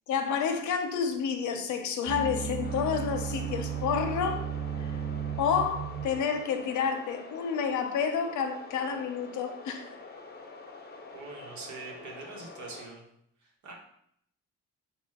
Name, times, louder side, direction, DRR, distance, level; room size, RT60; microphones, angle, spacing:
voice 1, 0.1-4.5 4.8-4.9 5.4-9.9, left 6 dB, 75° left, 5 dB, 0.7 m, -29 dB
sound 1, 2.1-6.4, right 8 dB, 20° right, 0.3 m, -35 dB
sound 2, 2.6-12.9, left 3 dB, 35° left, 0.7 m, -47 dB
voice 2, 11.1-13.0 13.4-13.7, right 3 dB, 70° right, 0 dB, 1.1 m, -44 dB
4.4 x 2.3 x 3.5 m, 0.71 s
cardioid pair, 90°, 30 cm